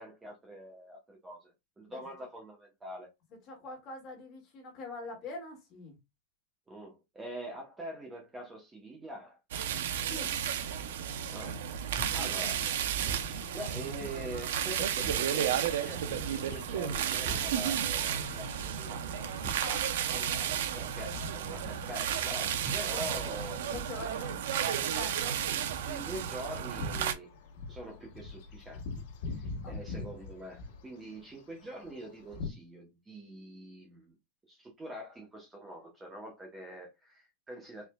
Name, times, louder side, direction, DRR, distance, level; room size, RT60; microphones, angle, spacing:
voice 1, 0.0-3.1 6.7-9.4 11.3-11.6 12.1-12.7 13.5-19.3 20.1-23.8 25.5-27.3 27.7-28.8 29.2-34.1 34.5-37.9, equal, 10° right, 0.7 m, -45 dB
voice 2, 3.5-6.0 9.8-10.3 19.6-19.9 22.9-23.0 23.7-24.4 24.9-25.2 29.6-29.8, left 2 dB, 30° left, 1.9 m, -44 dB
sound 1, 9.5-27.1, right 9 dB, 70° right, 0.6 m, -33 dB
sound 2, 11.9-12.2 12.9-13.3 14.0-14.2 15.0-15.3 16.1-16.4 17.2-17.6 18.4-18.7 19.4-19.7 20.5-20.7 21.6-21.8 22.6-22.9 23.7-23.9, right 3 dB, 30° right, 2.2 m, -41 dB
sound 3, 13.9-32.5, left 4 dB, 55° left, 1.2 m, -46 dB
4.5 x 3.2 x 2.2 m
supercardioid pair, 170°, 0 cm